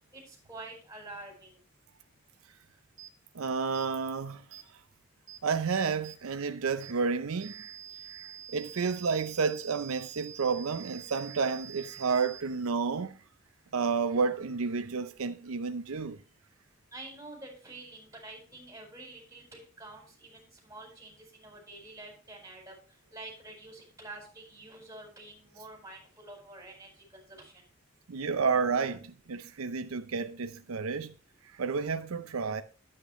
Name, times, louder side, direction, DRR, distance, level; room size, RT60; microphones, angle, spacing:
voice 1, 0.1-1.6 16.9-19.4 19.8-22.7 23.1-27.5, right 2 dB, 15° right, 4.5 m, -47 dB
sound 1, 3.0-3.1 3.7-3.9 4.5-4.7 5.3-5.4 6.0-6.2 6.8-7.0 7.4-12.4, right 9 dB, 35° right, 1.4 m, -47 dB
voice 2, 3.3-4.4 5.4-7.8 8.1-13.2 13.7-16.2 28.1-31.1 31.4-32.6, right 5 dB, 85° right, 0.6 m, -31 dB
9.9 x 8.7 x 3.1 m
head